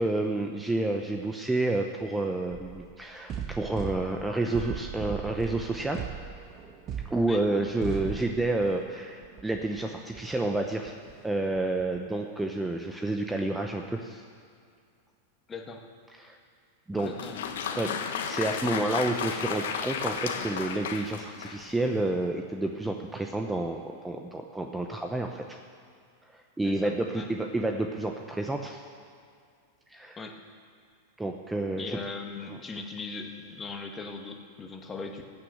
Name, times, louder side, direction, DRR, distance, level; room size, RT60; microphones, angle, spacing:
voice 1, 0.0-6.1 7.0-11.0 11.2-14.2 16.2-16.4 16.9-17.1 17.7-17.9 18.2-25.6 26.3-28.8 29.9-30.2 31.2-32.0 32.5-32.6, right 2 dB, 10° right, 3 dB, 0.8 m, -30 dB
sound 1, 2.5-2.9 3.3-8.9 9.2-12.1, right 8 dB, 35° right, 1.1 m, -39 dB
voice 2, 15.5-15.9 17.0-17.4 26.6-27.3 30.2-30.4 31.8-35.2, left 4 dB, 20° left, 3 dB, 1.5 m, -39 dB
Applause, 16.9-21.8, left 7 dB, 75° left, 1.2 m, -33 dB
17.0 x 6.3 x 8.0 m, 2.3 s
hypercardioid pair, 120°, 0 cm